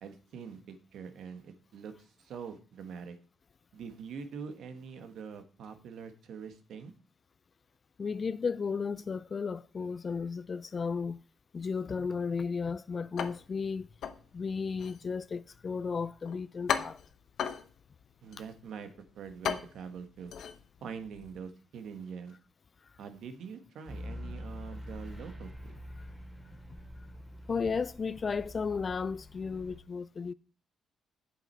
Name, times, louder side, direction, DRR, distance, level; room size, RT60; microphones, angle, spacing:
voice 1, 0.0-3.2 3.7-6.9 18.2-18.9 19.1-20.3 20.8-22.4 23.0-25.7, right 6 dB, 75° right, 1.1 m, -44 dB
voice 2, 8.0-11.2 11.5-13.9 14.3-17.0 27.5-30.3, left 5 dB, 40° left, 0.3 m, -34 dB
sound 1, 13.2-21.4, left 8 dB, 70° left, 0.8 m, -39 dB
sound 2, 23.9-29.8, equal, 5° right, 2.5 m, -45 dB
7.8 x 7.1 x 4.4 m
cardioid pair, 90°, 0 cm